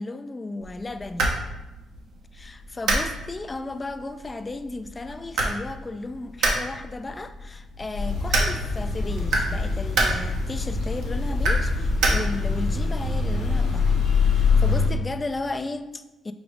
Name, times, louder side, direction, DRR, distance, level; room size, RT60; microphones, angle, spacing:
voice 1, 0.0-1.4 2.3-16.3, left 2 dB, 25° left, 10 dB, 0.3 m, -34 dB
sound 1, 0.6-12.6, right 2 dB, 80° right, 0.8 m, -29 dB
sound 2, 7.9-14.9, left 4 dB, 85° left, 0.9 m, -24 dB
5.0 x 2.0 x 4.7 m, 1.0 s
cardioid pair, 90°, 0 cm